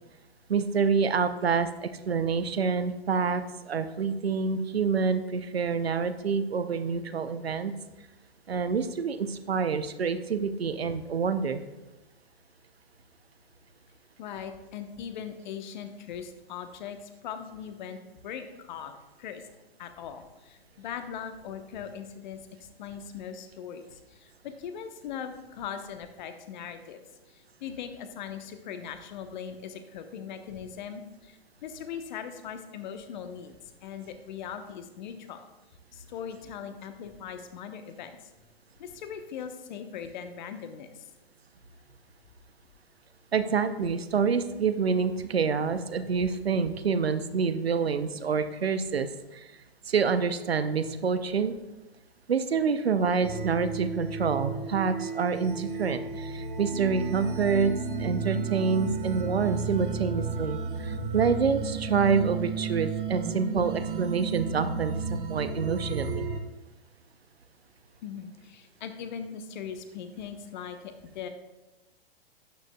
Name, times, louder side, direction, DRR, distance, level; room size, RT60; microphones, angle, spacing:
voice 1, 0.5-7.7 8.5-11.6 43.3-49.5 49.9-51.6 52.3-57.7 58.0-66.3, right 5 dB, 80° right, 11 dB, 0.7 m, -27 dB
voice 2, 14.2-19.4 19.8-27.0 27.3-33.6 33.8-35.4 35.9-38.2 38.8-41.0 68.0-71.3, left 7 dB, 50° left, 8 dB, 1.0 m, -40 dB
sound 1, 53.2-66.4, right 4 dB, 60° right, 1.1 m, -33 dB
12.0 x 8.9 x 2.3 m, 1.1 s
figure-of-eight pair, 110°, 30 cm